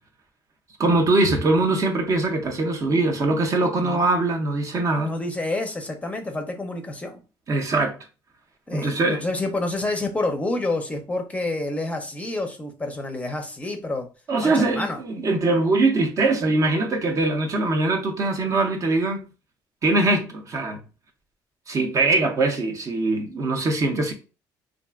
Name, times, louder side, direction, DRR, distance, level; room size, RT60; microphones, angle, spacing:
voice 1, 0.8-5.1 7.5-7.9 8.7-9.2 14.3-19.3 19.8-20.8 21.7-24.1, right 2 dB, 40° right, 0.6 m, -22 dB
voice 2, 5.0-7.2 8.7-14.1 14.4-15.0, left 2 dB, 15° left, 0.6 m, -28 dB
2.9 x 2.5 x 2.3 m
cardioid pair, 100°, 9 cm